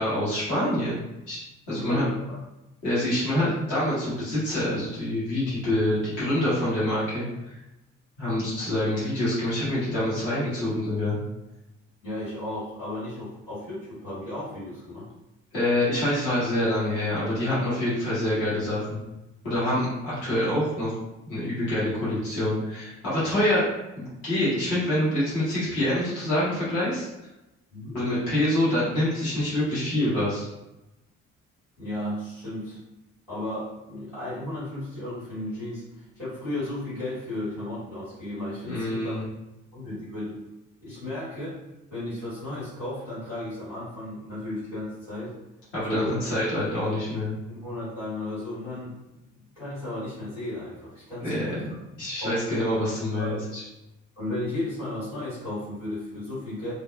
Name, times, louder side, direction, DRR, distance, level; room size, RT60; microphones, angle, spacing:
voice 1, 0.0-1.4 1.7-2.1 2.8-7.5 8.2-11.2 15.5-19.0 19.4-20.9 21.2-23.6 24.0-27.1 27.9-30.4 38.7-39.2 45.7-47.3 51.2-51.7 52.0-53.6, left 1 dB, 65° left, -10 dB, 1.4 m, -26 dB
voice 2, 1.7-2.4 12.0-15.1 27.7-28.0 31.8-32.8 33.3-39.2 39.7-40.4 40.8-41.6 41.9-45.3 45.9-46.1 47.5-48.9 49.5-51.6 52.2-52.4 52.9-53.5 54.2-56.7, left 1 dB, 90° left, -16 dB, 1.4 m, -34 dB
3.3 x 2.1 x 2.4 m, 0.97 s
figure-of-eight pair, 45°, 37 cm